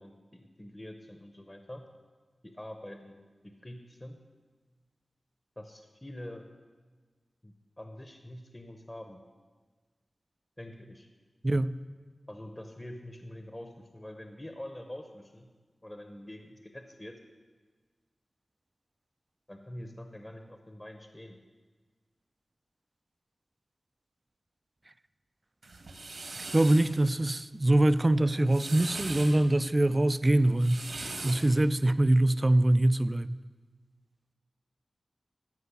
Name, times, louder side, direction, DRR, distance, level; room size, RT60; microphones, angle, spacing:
voice 1, 0.0-1.9 2.4-4.2 5.6-6.5 7.4-9.2 10.6-11.1 12.3-15.5 15.8-17.2 19.5-21.4, left 1 dB, 15° left, 0.8 m, -45 dB
sound 1, 25.6-26.9 28.3-29.4 30.4-31.5, right 3 dB, 75° right, 1.6 m, -40 dB
voice 2, 26.5-30.8 31.2-33.4, right 1 dB, 25° right, 0.4 m, -24 dB
13.5 x 5.5 x 8.3 m
wide cardioid pair, 95°, 0 cm